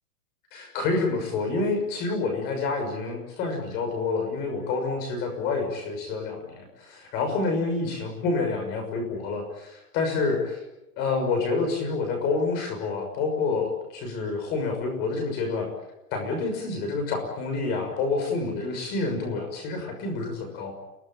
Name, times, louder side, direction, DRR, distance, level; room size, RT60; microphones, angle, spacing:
voice 1, 0.5-10.6 11.0-15.7 16.1-20.8, left 3 dB, 20° left, 5 dB, 6.2 m, -28 dB
29.0 x 19.0 x 9.0 m, 0.95 s
hypercardioid pair, 180°, 45 cm